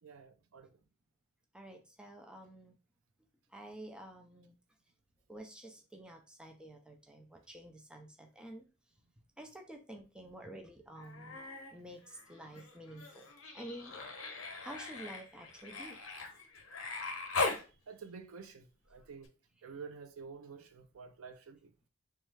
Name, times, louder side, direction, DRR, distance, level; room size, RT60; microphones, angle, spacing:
voice 1, 0.0-0.8 17.4-19.3 19.6-21.7, right 5 dB, 75° right, 0.5 m, -50 dB
voice 2, 1.5-2.7 3.5-4.5 5.3-8.7 9.4-11.4 11.7-13.3 13.5-14.0 14.6-16.0, right 1 dB, 5° right, 0.4 m, -50 dB
Human voice, 11.0-11.7 12.0-17.6 19.2-19.3, left 3 dB, 70° left, 0.8 m, -40 dB
3.1 x 2.3 x 3.2 m
head